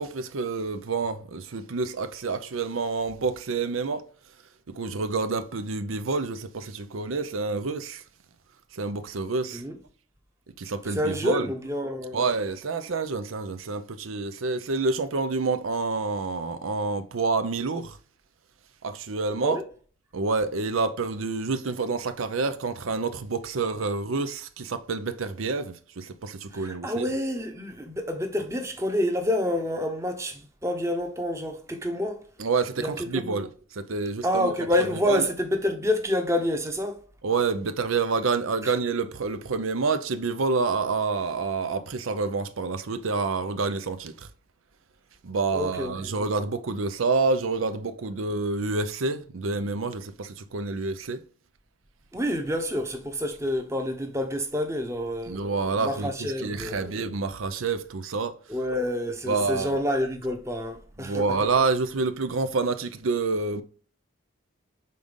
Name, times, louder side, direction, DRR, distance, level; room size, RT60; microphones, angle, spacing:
voice 1, 0.0-4.0 4.7-8.0 8.7-9.6 10.6-11.5 12.1-18.0 18.8-19.6 20.1-27.1 32.4-34.5 34.8-35.3 37.2-44.3 45.2-51.2 55.3-58.4 59.3-59.8 61.0-63.6, right 4 dB, 90° right, 0.6 m, -28 dB
voice 2, 10.9-12.2 19.4-19.6 26.5-32.2 32.8-33.3 34.2-37.0 38.6-38.7 45.5-46.1 52.1-55.4 55.8-57.0 58.5-61.2, left 1 dB, 15° right, 0.8 m, -28 dB
5.5 x 3.8 x 5.2 m
head